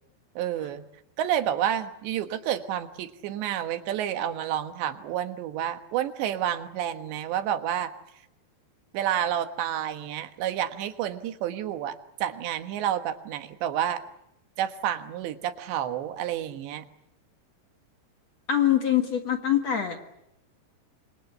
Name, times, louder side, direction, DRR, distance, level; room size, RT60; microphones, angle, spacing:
voice 1, 0.4-0.9 1.2-7.9 8.9-14.0 14.6-16.9, right 10 dB, 90° right, 9 dB, 3.7 m, -29 dB
voice 2, 18.5-20.0, left 10 dB, 50° left, 5 dB, 2.3 m, -23 dB
28.0 x 25.5 x 8.0 m, 0.81 s
omnidirectional pair, 4.9 m